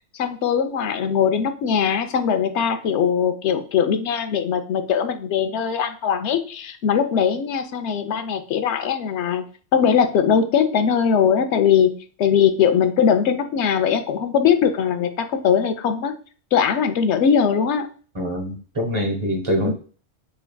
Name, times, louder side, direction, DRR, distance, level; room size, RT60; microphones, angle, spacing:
voice 1, 0.1-9.4 9.7-16.1 16.5-17.9 19.6-19.7, left 7 dB, 80° left, 9 dB, 0.9 m, -20 dB
voice 2, 18.1-19.7, equal, 30° right, 3 dB, 0.9 m, -24 dB
4.7 x 3.3 x 2.3 m, 0.40 s
omnidirectional pair, 1.2 m